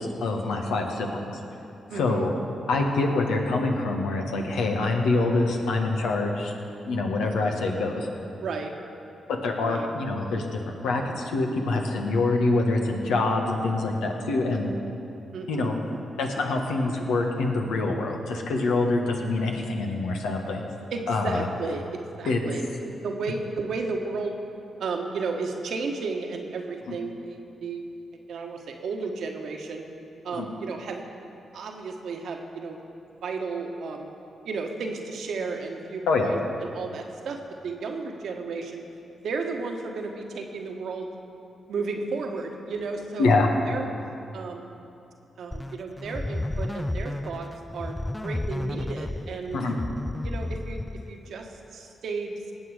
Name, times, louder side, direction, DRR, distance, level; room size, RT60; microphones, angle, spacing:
voice 1, 0.0-1.4 1.9-2.3 2.7-6.5 6.8-8.1 9.3-14.7 15.5-15.8 16.2-20.6 21.1-21.5 22.2-22.4 26.9-27.0 30.3-30.5 36.1-36.3 43.2-43.5 49.5-49.7, left 3 dB, 80° left, 1 dB, 1.5 m, -25 dB
voice 2, 1.9-2.3 8.0-8.7 9.6-9.9 15.3-15.8 20.9-24.3 24.8-27.8 28.3-29.8 30.2-31.0 31.5-32.8 33.2-34.1 34.4-37.4 37.6-38.8 39.1-41.1 41.7-43.4 43.7-43.9 44.3-44.7 45.4-47.5 47.7-49.6 50.2-52.5, right 4 dB, 70° right, 3 dB, 1.4 m, -33 dB
sound 1, 45.5-51.3, left 1 dB, 15° left, 0.4 m, -32 dB
19.5 x 7.9 x 5.0 m, 2.7 s
hypercardioid pair, 40°, 0 cm